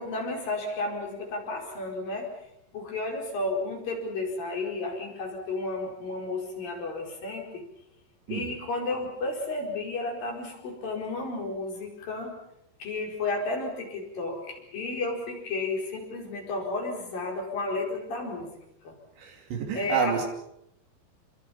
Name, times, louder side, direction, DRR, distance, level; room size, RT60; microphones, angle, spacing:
voice 1, 0.0-2.3 2.7-7.6 8.3-12.4 12.8-18.5 18.8-19.0 19.7-20.3, left 2 dB, 50° left, 0 dB, 6.4 m, -32 dB
voice 2, 19.2-20.3, right 8 dB, 80° right, 2 dB, 5.0 m, -29 dB
28.0 x 24.5 x 5.7 m, 0.80 s
omnidirectional pair, 5.1 m